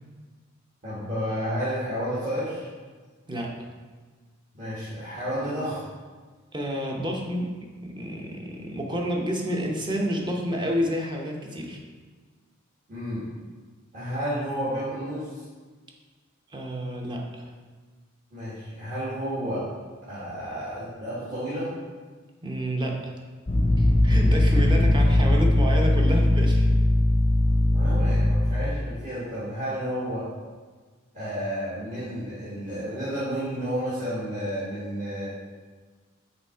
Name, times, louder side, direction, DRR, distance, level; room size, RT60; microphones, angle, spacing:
voice 1, 0.8-2.7 4.5-5.8 12.9-13.3 13.9-15.4 18.3-19.6 20.1-21.7 24.1-24.4 27.7-30.2 31.1-35.3, equal, 40° right, -12 dB, 1.6 m, -31 dB
voice 2, 6.5-7.5 7.8-11.8 16.5-17.5 22.4-23.1 23.8-26.8, equal, 20° right, 0 dB, 0.8 m, -29 dB
sound 1, 23.5-28.8, left 1 dB, 30° left, 0.6 m, -20 dB
5.9 x 3.6 x 4.5 m, 1.4 s
head